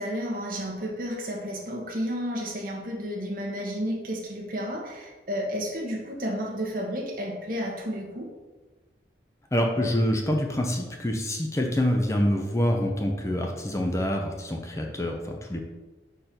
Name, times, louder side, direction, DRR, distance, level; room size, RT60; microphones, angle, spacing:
voice 1, 0.0-8.3, equal, 50° right, -1 dB, 1.3 m, -32 dB
voice 2, 9.5-15.6, equal, 15° left, 1 dB, 0.6 m, -26 dB
5.0 x 4.5 x 5.9 m, 1.2 s
head